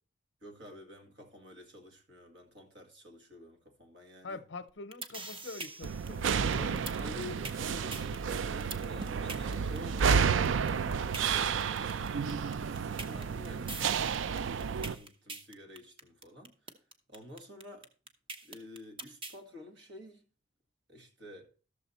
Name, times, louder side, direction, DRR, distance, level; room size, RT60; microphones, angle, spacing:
voice 1, 0.4-4.4 6.9-10.5 11.2-12.2 12.5-16.8 17.1-17.9 18.4-20.2 20.9-21.5, left 1 dB, 65° right, 2.1 m, -50 dB
voice 2, 4.2-7.2, left 3 dB, 70° left, 0.7 m, -45 dB
sound 1, 4.7-19.4, right 3 dB, 25° right, 0.9 m, -43 dB
sound 2, 5.8-14.9, right 6 dB, 85° right, 0.4 m, -31 dB
12.5 x 6.9 x 4.2 m
head